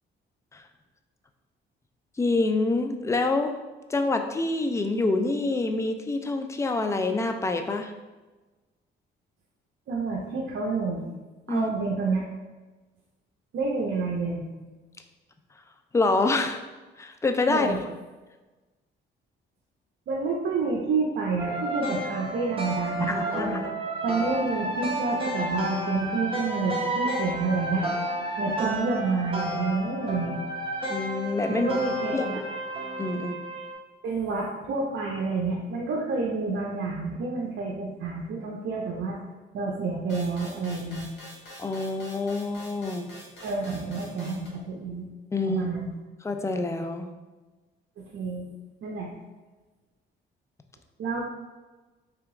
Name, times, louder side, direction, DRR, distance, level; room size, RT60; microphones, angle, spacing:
voice 1, 2.2-3.5 3.9-7.9 11.5-11.7 15.9-16.6 17.0-17.7 23.0-23.6 28.5-28.6 30.9-31.7 32.1-32.3 33.0-33.4 41.6-43.1 45.3-45.7 46.2-47.1, left 3 dB, 15° left, 6 dB, 0.4 m, -26 dB
voice 2, 9.9-11.0 11.5-12.2 13.5-14.4 17.5-17.8 20.1-23.6 24.0-27.8 28.4-30.4 31.5-32.4 34.0-39.2 39.5-41.1 43.4-45.1 45.4-45.9 48.0-48.5 48.8-49.1 51.0-51.2, right 4 dB, 65° right, -2 dB, 0.6 m, -29 dB
sound 1, 21.4-33.7, right 1 dB, 25° right, 0.9 m, -31 dB
sound 2, 40.1-44.5, equal, 60° left, 1.5 m, -45 dB
3.4 x 2.9 x 3.6 m, 1.2 s
cardioid pair, 90°, 20 cm